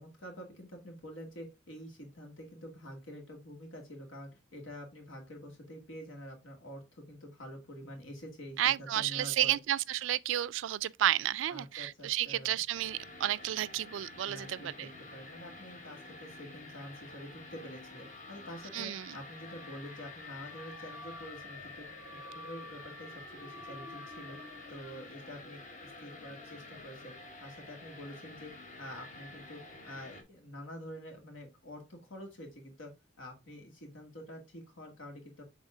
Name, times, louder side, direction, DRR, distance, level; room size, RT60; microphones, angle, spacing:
voice 1, 0.0-9.6 11.5-12.6 14.2-21.9 22.1-24.4 24.7-32.9 33.2-35.5, equal, 85° left, 2.4 m, -47 dB
voice 2, 8.6-14.9 18.7-19.2, right 12 dB, 75° right, 0.3 m, -31 dB
sound 1, 12.7-30.2, left 2 dB, 40° left, 1.1 m, -49 dB
Car / Alarm, 19.3-24.8, left 2 dB, 60° left, 1.5 m, -50 dB
7.3 x 3.6 x 3.7 m
head